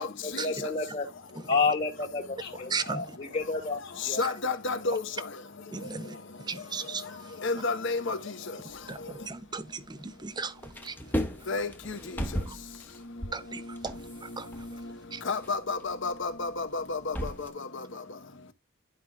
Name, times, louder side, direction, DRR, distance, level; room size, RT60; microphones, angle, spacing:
voice 1, 0.0-1.1 1.5-4.2, left 4 dB, 40° left, 1.9 m, -30 dB
voice 2, 2.7-3.2 4.2-4.3 5.7-7.3 8.9-11.0 12.5-12.6 13.3-14.7 15.1-15.2, right 4 dB, 20° right, 0.5 m, -37 dB
voice 3, 4.2-5.0 7.4-8.2 11.5-11.7 15.3-17.0, left 3 dB, 60° left, 1.0 m, -29 dB
sound 1, 8.7-10.3 10.5-17.5, equal, 10° left, 0.9 m, -37 dB
11.5 x 4.8 x 2.2 m
head